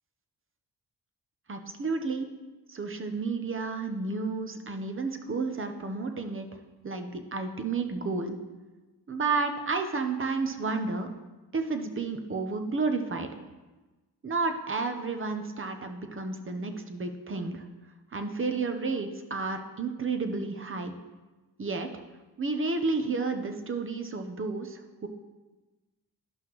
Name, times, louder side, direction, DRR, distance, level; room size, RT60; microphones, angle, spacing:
voice 1, 1.5-2.3 2.7-6.5 6.8-8.4 9.1-11.1 11.5-13.3 14.2-17.6 18.1-20.9 21.6-21.9 22.4-25.1, right 4 dB, 35° right, 6 dB, 0.8 m, -31 dB
11.5 x 5.6 x 3.1 m, 1.2 s
cardioid pair, 80°, 39 cm